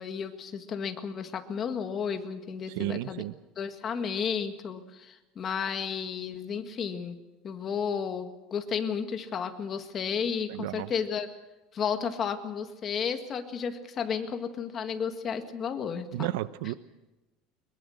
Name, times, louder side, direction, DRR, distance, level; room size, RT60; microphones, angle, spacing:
voice 1, 0.0-3.2 3.6-7.2 7.4-11.3 11.7-16.3, left 7 dB, 25° left, 7 dB, 1.9 m, -33 dB
voice 2, 2.8-3.3 10.5-10.9 16.1-16.7, right 16 dB, 80° right, 15 dB, 0.9 m, -32 dB
23.0 x 21.5 x 6.5 m, 1.1 s
cardioid pair, 165°, 0 cm